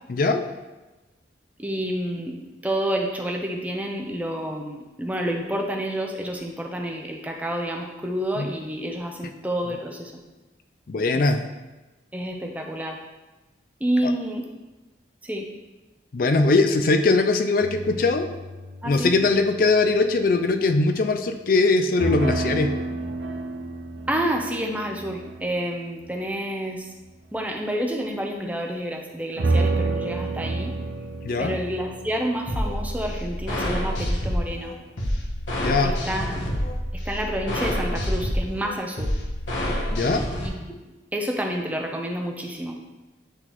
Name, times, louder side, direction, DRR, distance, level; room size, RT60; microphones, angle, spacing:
voice 1, 0.1-0.4 8.4-8.5 10.9-11.4 16.1-18.3 18.8-22.7 31.2-31.6 35.6-35.9 39.9-40.2, left 3 dB, 50° left, 7 dB, 0.4 m, -21 dB
voice 2, 1.6-10.1 11.1-11.3 12.1-13.0 13.8-14.5 15.2-15.5 18.8-19.2 24.1-26.9 27.3-30.7 31.4-34.8 35.8-36.4 36.9-39.1 40.4-40.8 41.1-42.8, right 1 dB, 10° right, 2 dB, 0.6 m, -29 dB
sound 1, 17.6-20.1 22.0-26.4 29.4-34.8, right 3 dB, 75° right, 0.5 m, -30 dB
sound 2, 32.5-40.5, equal, 90° left, 1.4 m, -27 dB
9.9 x 3.9 x 3.0 m, 1.1 s
head